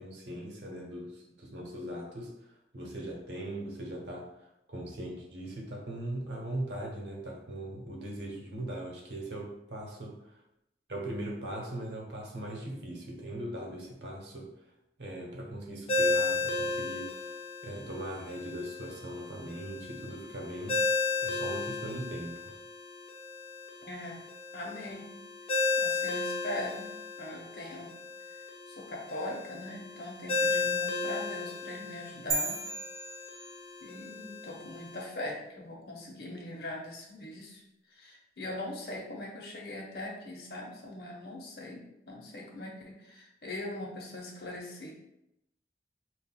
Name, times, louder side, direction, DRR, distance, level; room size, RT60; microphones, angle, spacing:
voice 1, 0.0-2.3 2.7-4.3 4.7-10.3 10.9-14.5 15.0-17.3 17.6-20.8 21.2-22.5, right 1 dB, 85° right, -1 dB, 0.9 m, -39 dB
Ringtone, 15.9-35.0, left 3 dB, 35° left, 0.5 m, -34 dB
voice 2, 23.9-24.3 24.5-25.1 25.8-27.9 28.3-32.6 33.8-37.6 37.9-44.9, left 1 dB, 60° left, 0 dB, 0.8 m, -41 dB
sound 1, 32.3-34.0, right 3 dB, 30° right, 0.5 m, -35 dB
5.5 x 2.3 x 2.3 m, 0.86 s
head